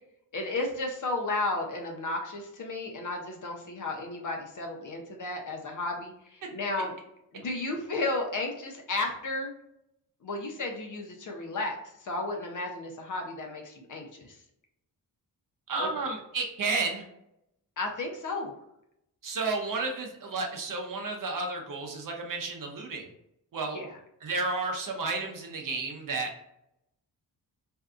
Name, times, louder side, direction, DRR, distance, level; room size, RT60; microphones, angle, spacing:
voice 1, 0.3-6.9 7.3-9.5 10.2-14.4 15.8-15.9 17.8-18.5 23.7-24.0, left 2 dB, 50° left, 1 dB, 0.7 m, -33 dB
voice 2, 15.7-17.0 19.2-23.1 23.5-23.8 24.2-26.3, right 3 dB, 50° right, 2 dB, 0.7 m, -32 dB
2.6 x 2.2 x 2.4 m, 0.80 s
cardioid pair, 70°, 41 cm